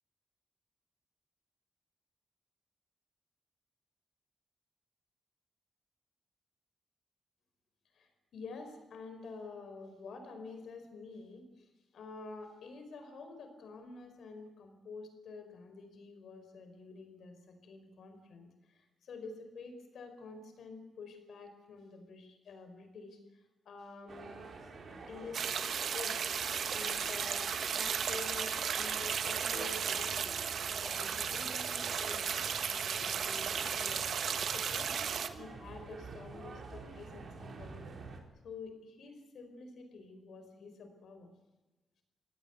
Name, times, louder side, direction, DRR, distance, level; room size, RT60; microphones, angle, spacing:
voice 1, 7.9-24.4 24.9-25.4 25.8-26.3 26.7-30.4 30.8-32.3 32.6-35.0 35.3-37.9 38.4-41.3, left 4 dB, 75° left, 7 dB, 5.0 m, -49 dB
sound 1, 24.1-38.2, right 4 dB, 50° right, 3.9 m, -48 dB
sound 2, 25.3-35.3, right 7 dB, 70° right, 1.3 m, -35 dB
25.0 x 18.0 x 8.3 m, 1.1 s
wide cardioid pair, 155°, 0 cm